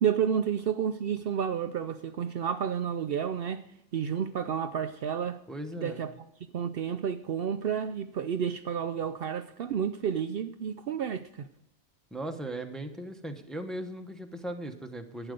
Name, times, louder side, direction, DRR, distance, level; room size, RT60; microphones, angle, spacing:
voice 1, 0.0-3.6 3.9-5.4 5.8-6.1 6.5-11.5, right 8 dB, 60° right, 0.7 m, -30 dB
voice 2, 5.5-6.0 12.1-15.3, right 1 dB, ahead, 0.9 m, -38 dB
11.5 x 9.1 x 5.1 m
omnidirectional pair, 1.2 m